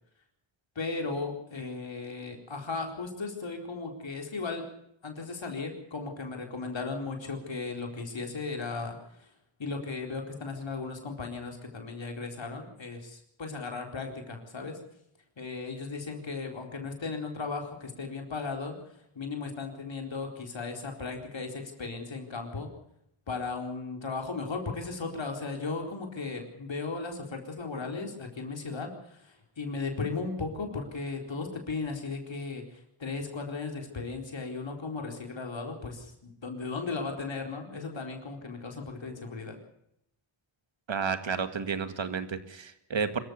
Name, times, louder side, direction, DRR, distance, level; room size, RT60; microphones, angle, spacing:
voice 1, 0.8-4.6 5.0-9.3 9.6-14.8 15.4-18.8 19.1-22.7 23.3-39.6, left 4 dB, 60° left, 3 dB, 4.4 m, -36 dB
voice 2, 40.9-43.2, right 5 dB, 65° right, 10 dB, 2.1 m, -31 dB
25.5 x 14.5 x 7.0 m, 0.77 s
wide cardioid pair, 80°, 50 cm